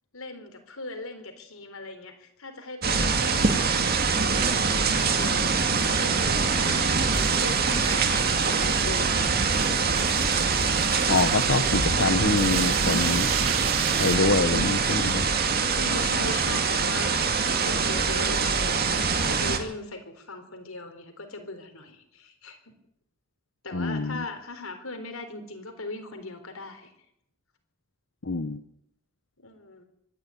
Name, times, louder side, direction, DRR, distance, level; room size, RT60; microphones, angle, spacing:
voice 1, 0.1-10.4 15.7-22.7 23.6-26.9 29.4-29.8, left 2 dB, 80° left, 7 dB, 4.0 m, -39 dB
sound 1, 2.8-19.6, right 5 dB, 45° right, 2.3 m, -24 dB
sound 2, 7.1-14.2, right 8 dB, 75° right, 1.9 m, -36 dB
voice 2, 11.1-13.3 14.0-15.2 23.7-24.3 28.2-28.6, left 3 dB, 60° left, 9 dB, 1.0 m, -25 dB
24.5 x 11.0 x 9.8 m, 0.76 s
head